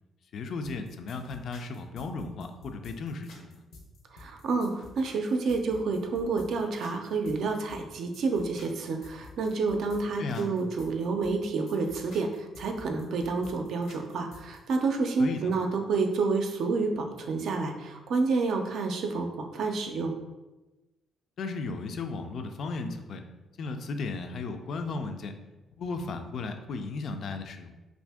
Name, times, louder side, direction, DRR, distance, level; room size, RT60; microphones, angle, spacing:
voice 1, 0.3-3.6 10.2-10.5 15.2-15.5 21.4-23.2 23.6-25.3 25.7-27.7, left 3 dB, 60° left, 6 dB, 0.3 m, -35 dB
sound 1, 0.6-14.6, left 3 dB, 85° left, 0.7 m, -50 dB
voice 2, 4.1-20.1, right 4 dB, 70° right, 4 dB, 0.4 m, -29 dB
2.7 x 2.5 x 3.4 m, 1.1 s
cardioid pair, 90°, 0 cm